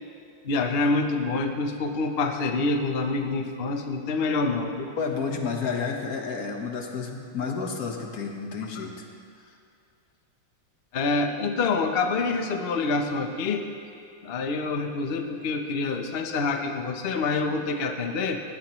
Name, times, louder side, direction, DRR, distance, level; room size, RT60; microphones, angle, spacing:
voice 1, 0.4-4.9 8.8-8.9 10.9-13.7 14.2-18.4, left 3 dB, 80° left, 5 dB, 0.5 m, -26 dB
voice 2, 5.0-9.1, left 5 dB, 50° left, 2 dB, 1.6 m, -31 dB
19.5 x 15.5 x 3.1 m, 2.4 s
omnidirectional pair, 2.3 m